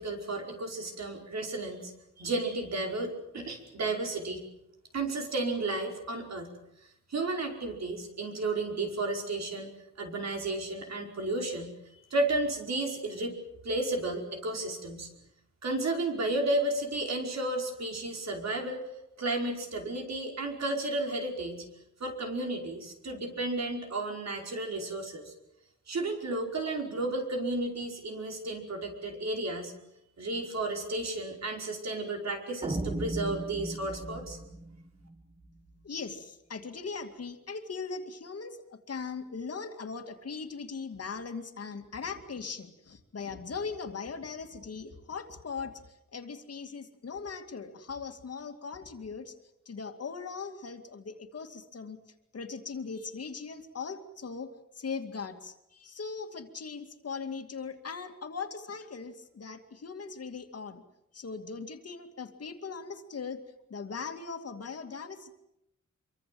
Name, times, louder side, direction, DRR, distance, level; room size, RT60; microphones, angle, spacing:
voice 1, 0.0-1.9 2.2-4.4 4.9-6.5 7.1-9.7 10.0-11.8 12.1-13.3 13.6-15.1 15.6-18.8 19.2-21.6 22.0-25.3 25.9-29.7 30.2-34.4, right 2 dB, 60° right, 2 dB, 5.1 m, -33 dB
sound 1, 32.6-35.7, right 2 dB, 20° right, 1.6 m, -36 dB
voice 2, 35.8-45.8 46.1-49.3 49.7-52.0 52.3-54.5 54.8-60.8 61.1-63.4 63.7-65.3, left 5 dB, 50° left, 6 dB, 2.3 m, -39 dB
26.0 x 24.0 x 7.8 m, 0.84 s
wide cardioid pair, 165°, 31 cm